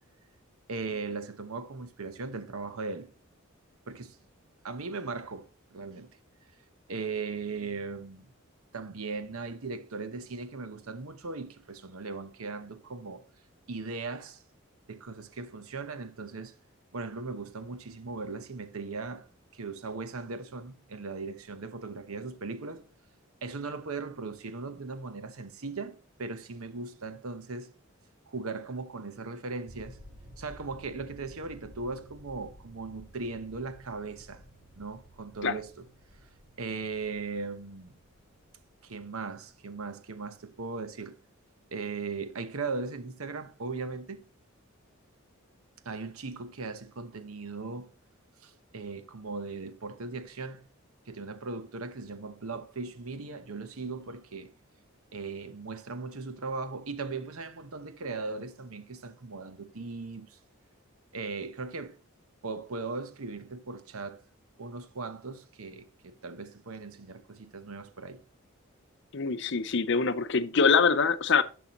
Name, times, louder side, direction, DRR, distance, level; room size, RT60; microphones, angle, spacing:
voice 1, 0.7-3.1 3.9-4.2 4.6-6.1 6.9-8.3 8.7-13.2 13.7-14.4 14.9-16.5 16.9-19.3 19.5-22.9 23.4-27.7 28.3-30.0 30.4-34.4 34.8-35.8 36.6-37.9 38.8-41.2 41.7-44.2 45.8-47.9 48.4-50.6 51.1-54.5 55.1-60.4 61.1-62.0 62.4-64.2 64.6-68.2, right 4 dB, 90° right, 0.9 m, -38 dB
sound 1, 29.7-40.5, equal, ahead, 2.8 m, -54 dB
voice 2, 69.1-71.4, left 5 dB, 55° left, 0.6 m, -24 dB
11.0 x 6.1 x 3.0 m
head